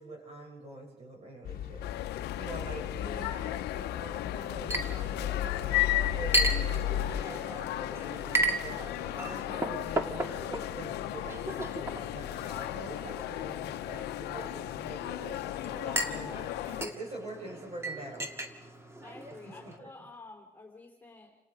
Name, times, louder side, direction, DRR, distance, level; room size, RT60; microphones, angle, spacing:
voice 1, 0.0-1.8 2.4-4.9 5.2-12.4 12.7-13.8 14.1-16.3 16.8-18.3 19.6-19.9, right 2 dB, 35° right, 0 dB, 8.0 m, -45 dB
sound 1, 1.4-7.2, left 11 dB, 60° left, 1.1 m, -35 dB
sound 2, 1.8-16.9, left 15 dB, 75° left, 0.8 m, -35 dB
Chink clink, 4.7-19.8, right 1 dB, 15° right, 2.0 m, -36 dB
voice 2, 12.4-12.9 15.3-17.0 17.5-17.6 19.0-21.4, left 3 dB, 10° left, 2 dB, 3.6 m, -52 dB
29.0 x 18.0 x 5.1 m, 0.96 s
cardioid pair, 110°, 17 cm